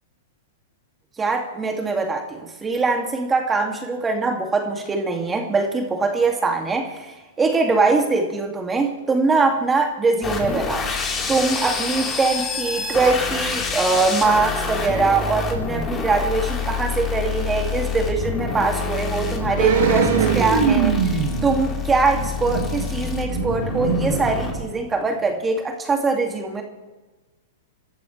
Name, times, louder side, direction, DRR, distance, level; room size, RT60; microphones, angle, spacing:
voice 1, 1.2-10.9 11.3-26.6, right 3 dB, 15° right, 2 dB, 2.5 m, -22 dB
sound 1, 10.2-24.6, left 4 dB, 25° left, 4.0 m, -27 dB
sound 2, 19.6-25.0 25.3-25.4, right 7 dB, 70° right, 3.2 m, -23 dB
28.5 x 13.5 x 3.4 m, 1.2 s
hypercardioid pair, 120°, 0 cm